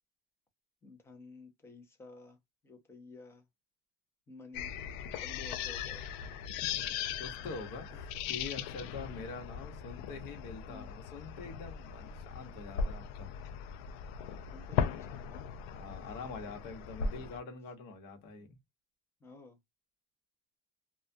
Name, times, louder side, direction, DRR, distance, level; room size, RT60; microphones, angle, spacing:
voice 1, 0.8-2.4 2.6-3.4 4.3-4.7 5.2-6.0 7.0-7.1 7.9-8.0 10.7-10.9 14.5-15.6 16.1-16.2 19.2-19.6, left 3 dB, 15° left, 0.6 m, -52 dB
sound 1, 4.5-17.4, left 7 dB, 85° left, 0.4 m, -38 dB
voice 2, 7.2-13.3 15.7-18.6, left 4 dB, 60° left, 1.1 m, -45 dB
2.3 x 2.2 x 2.5 m
cardioid pair, 180°, 19 cm